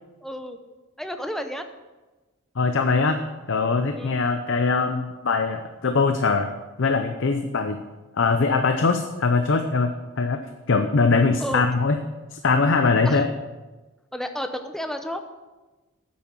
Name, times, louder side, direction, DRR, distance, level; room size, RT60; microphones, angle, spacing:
voice 1, 0.2-0.6 1.0-1.6 3.9-4.2 11.4-11.6 13.0-13.2 14.1-15.3, equal, ahead, 6 dB, 0.7 m, -31 dB
voice 2, 2.6-3.2 3.5-6.5 6.8-7.8 8.1-12.0 12.3-13.3, left 4 dB, 60° left, 7 dB, 0.6 m, -22 dB
9.3 x 8.4 x 6.2 m, 1.2 s
head